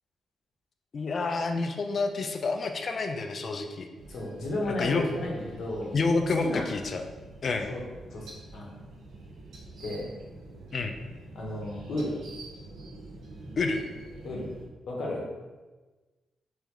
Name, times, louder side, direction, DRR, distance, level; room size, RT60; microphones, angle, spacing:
voice 1, 0.9-3.9 4.7-5.1 5.9-7.0 7.4-7.7 10.7-11.0 13.6-13.8, left 3 dB, 35° left, 5 dB, 0.3 m, -28 dB
sound 1, 3.9-14.7, right 2 dB, 55° right, 0.6 m, -46 dB
voice 2, 4.1-5.9 6.4-6.7 7.7-7.8 8.1-8.7 9.8-10.1 11.3-12.1 14.2-14.5 14.9-15.4, left 1 dB, 55° left, -2 dB, 0.8 m, -33 dB
3.3 x 3.0 x 3.6 m, 1.2 s
wide cardioid pair, 175°, 0 cm